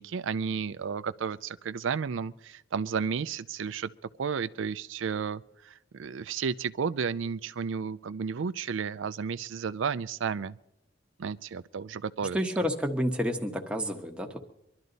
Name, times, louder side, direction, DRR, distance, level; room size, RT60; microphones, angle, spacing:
voice 1, 0.0-3.9 4.2-10.6 11.2-12.4, right 6 dB, 80° right, 0.4 m, -32 dB
voice 2, 12.3-14.4, equal, 5° right, 1.3 m, -29 dB
24.0 x 12.0 x 4.0 m
head